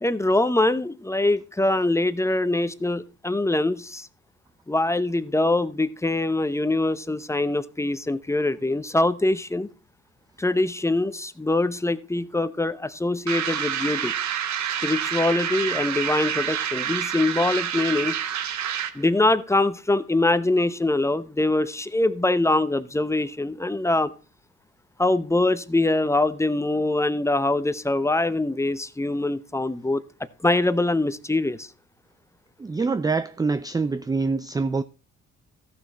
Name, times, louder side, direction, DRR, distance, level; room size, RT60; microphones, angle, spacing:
voice 1, 0.0-4.1 4.7-9.7 10.4-14.1 14.8-18.2 18.9-24.1 25.0-30.0 30.4-31.7, left 2 dB, 10° left, 0.8 m, -23 dB
sound 1, 13.3-19.1, right 9 dB, 65° right, 1.2 m, -28 dB
voice 2, 32.6-34.8, right 4 dB, 15° right, 0.4 m, -25 dB
14.0 x 6.3 x 4.2 m
cardioid pair, 90°, 30 cm